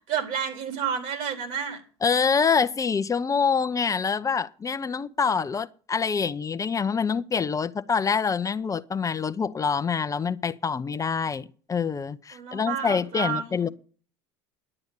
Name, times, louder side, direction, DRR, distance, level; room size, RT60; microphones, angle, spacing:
voice 1, 0.0-1.8 12.3-13.7, right 7 dB, 65° right, 4.1 m, -30 dB
voice 2, 2.0-13.7, left 6 dB, 25° left, 0.7 m, -26 dB
11.0 x 8.8 x 8.1 m
supercardioid pair, 100°, 14 cm